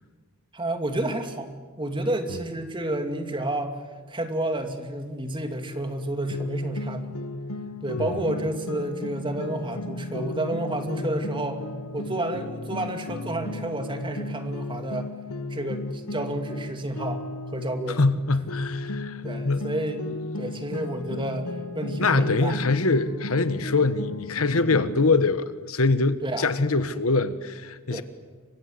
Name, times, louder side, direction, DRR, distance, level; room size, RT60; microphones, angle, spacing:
voice 1, 0.5-1.5 1.8-3.8 4.1-7.2 7.8-11.6 11.9-15.1 15.5-17.2 17.5-18.0 18.8-19.0 19.2-22.6 26.2-26.5 27.9-28.0, right 1 dB, 25° right, 2.6 m, -30 dB
sound 1, 6.3-18.1 18.5-25.0, left 2 dB, 90° left, 1.5 m, -35 dB
voice 2, 18.0-19.2 19.4-19.6 22.0-28.0, left 3 dB, 75° left, 1.4 m, -23 dB
29.5 x 25.0 x 7.9 m
head